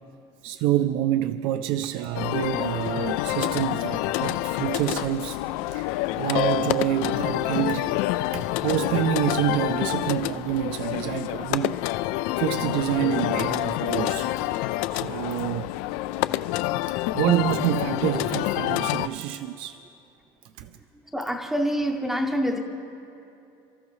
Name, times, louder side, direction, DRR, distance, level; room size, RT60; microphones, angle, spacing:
voice 1, 0.4-5.4 5.7-5.9 6.2-8.0 8.3-11.8 12.4-14.3 14.6-15.7 17.1-19.8 20.6-20.7, right 12 dB, 60° right, 9 dB, 0.4 m, -27 dB
sound 1, 2.1-19.1, left 16 dB, 90° left, 0.4 m, -27 dB
voice 2, 21.1-22.6, equal, 5° right, 3 dB, 0.6 m, -26 dB
28.5 x 14.0 x 3.2 m, 2.7 s
cardioid pair, 180°, 10 cm